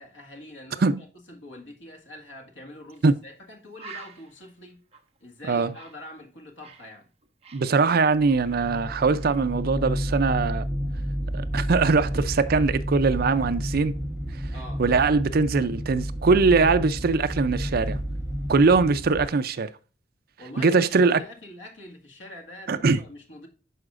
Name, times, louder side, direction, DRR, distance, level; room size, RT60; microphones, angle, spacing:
voice 1, 0.0-4.8 5.2-7.1 14.5-14.8 20.4-23.5, left 1 dB, 75° left, 1.8 m, -44 dB
Bird, 2.9-3.1 3.4-3.5 3.8-6.9 7.2-8.9 9.2-9.5, right 4 dB, 35° right, 1.1 m, -48 dB
voice 2, 7.5-10.6 11.3-14.0 14.8-18.0 18.5-19.7 20.6-21.2 22.7-23.0, right 4 dB, 55° right, 0.5 m, -21 dB
sound 1, 8.2-19.3, equal, 5° right, 1.0 m, -31 dB
11.0 x 4.9 x 2.5 m
head